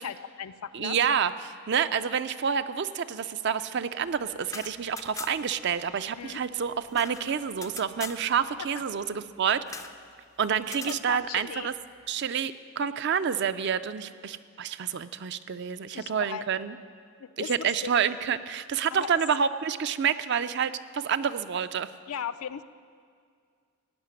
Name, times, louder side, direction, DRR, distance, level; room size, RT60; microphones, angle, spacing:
voice 1, 0.0-1.0 6.2-6.4 8.8-8.9 10.9-11.7 15.9-16.5 17.2-17.9 18.9-19.1 22.1-22.6, left 8 dB, 80° left, 13 dB, 0.4 m, -37 dB
voice 2, 0.7-9.6 10.4-11.7 12.1-16.7 17.5-21.9, right 7 dB, 50° right, 13 dB, 0.4 m, -28 dB
sound 1, 4.4-5.6 5.9-6.0 6.2-8.2 9.7-10.0 10.6-11.0, left 5 dB, 15° left, 0.3 m, -41 dB
17.0 x 5.7 x 9.6 m, 2.1 s
head